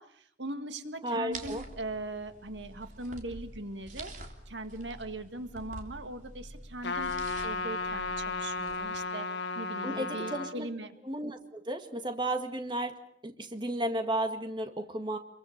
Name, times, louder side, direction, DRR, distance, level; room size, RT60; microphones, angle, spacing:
voice 1, 0.0-4.1 4.5-7.1 7.4-9.3 9.6-10.9, right 2 dB, 85° right, 9 dB, 1.9 m, -40 dB
voice 2, 1.0-1.6 9.8-10.7 11.0-13.0 13.2-15.2, right 1 dB, 25° right, 7 dB, 1.8 m, -33 dB
sound 1, 1.1-9.0, equal, 5° right, 6.5 m, -51 dB
sound 2, 1.3-9.0, right 3 dB, 45° right, 3.3 m, -49 dB
Trumpet, 6.8-10.5, left 3 dB, 80° left, 1.6 m, -34 dB
26.5 x 23.0 x 6.6 m, 0.67 s
head